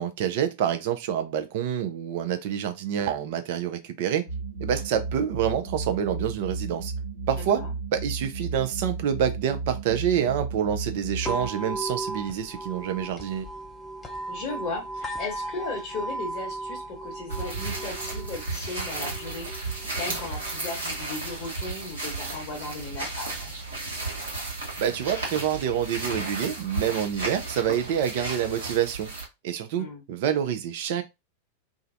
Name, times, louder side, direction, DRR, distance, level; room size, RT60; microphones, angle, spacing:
voice 1, 0.0-4.3 4.6-6.9 7.3-13.5 24.8-29.1 29.4-31.0, right 9 dB, 50° right, 0.4 m, -27 dB
sound 1, 4.3-11.5, right 4 dB, 80° left, 0.7 m, -34 dB
sound 2, 11.2-25.2, right 1 dB, 15° left, 0.5 m, -38 dB
voice 2, 14.3-23.5 29.7-30.0, left 3 dB, 40° left, 0.8 m, -36 dB
sound 3, 17.3-29.3, right 3 dB, 70° right, 1.0 m, -34 dB
2.4 x 2.0 x 2.5 m
figure-of-eight pair, 90°, 0 cm